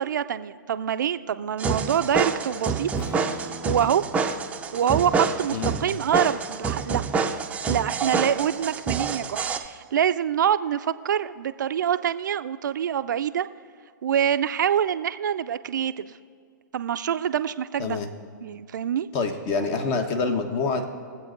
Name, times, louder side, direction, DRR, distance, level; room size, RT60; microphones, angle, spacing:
voice 1, 0.0-2.9 3.6-4.0 4.7-7.0 7.7-13.5 14.0-16.2 16.7-18.0 18.4-19.1, right 9 dB, 65° right, 12 dB, 0.4 m, -25 dB
sound 1, 1.6-9.6, right 5 dB, 10° right, 0.5 m, -27 dB
Strum, 2.9-6.9, right 1 dB, 60° left, 1.8 m, -43 dB
voice 2, 5.5-5.8 17.8-18.1 19.1-20.8, left 4 dB, 35° left, 6 dB, 1.1 m, -26 dB
22.5 x 8.1 x 2.6 m, 2.1 s
hypercardioid pair, 120°, 11 cm